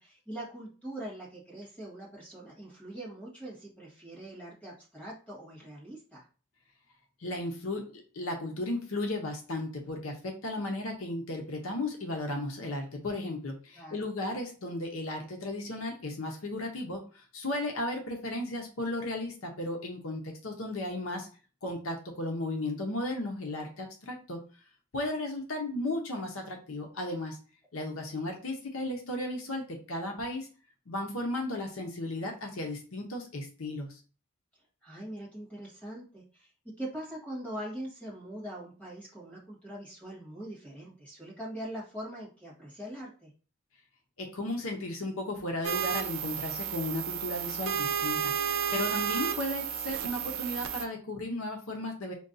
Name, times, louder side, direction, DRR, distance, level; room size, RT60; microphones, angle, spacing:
voice 1, 0.0-6.2 13.7-14.1 27.8-28.3 34.8-36.5 36.8-43.3, right 1 dB, 5° left, -6 dB, 1.4 m, -42 dB
voice 2, 7.2-21.3 21.6-24.4 24.9-27.4 27.7-30.5 30.9-34.0 44.2-52.1, left 1 dB, 80° left, 3 dB, 0.8 m, -35 dB
sound 1, 45.6-50.8, right 8 dB, 80° right, 0.5 m, -32 dB
5.1 x 2.3 x 2.6 m, 0.36 s
head